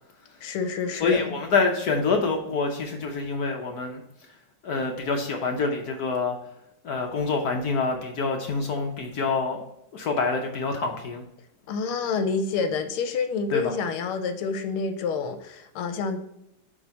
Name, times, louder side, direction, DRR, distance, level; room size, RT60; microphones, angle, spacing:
voice 1, 0.4-1.3 11.7-16.2, left 5 dB, 85° left, 8 dB, 1.6 m, -28 dB
voice 2, 1.0-4.0 4.6-6.4 6.8-9.6 9.9-11.2 13.5-13.7, left 4 dB, 60° left, 3 dB, 1.0 m, -26 dB
8.5 x 3.2 x 4.1 m, 0.81 s
omnidirectional pair, 2.4 m